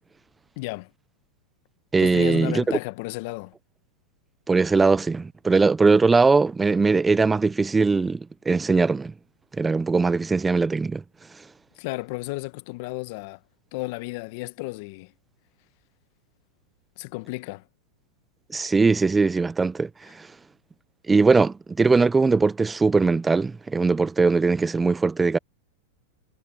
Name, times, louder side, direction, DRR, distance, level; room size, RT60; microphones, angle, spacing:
voice 1, 0.6-0.9 2.0-3.5 11.8-13.4 13.7-15.1 17.0-17.6, left 23 dB, 55° left, 1.1 m, -33 dB
voice 2, 1.9-2.8 4.5-9.1 9.6-11.0 18.5-20.3 21.1-25.4, right 4 dB, 15° right, 0.6 m, -20 dB
hypercardioid pair, 115°, 0 cm